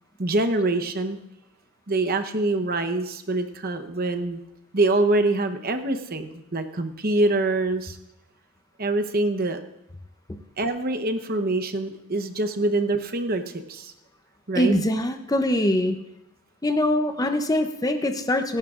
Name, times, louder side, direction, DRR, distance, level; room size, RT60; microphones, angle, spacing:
voice 1, 0.2-1.2 1.9-4.4 4.7-8.0 8.8-9.6 10.6-13.9 14.5-14.7, right 2 dB, 40° right, 8 dB, 0.9 m, -25 dB
voice 2, 14.5-16.0 16.6-18.6, left 1 dB, 15° left, 7 dB, 0.6 m, -23 dB
26.0 x 11.0 x 2.5 m, 0.88 s
head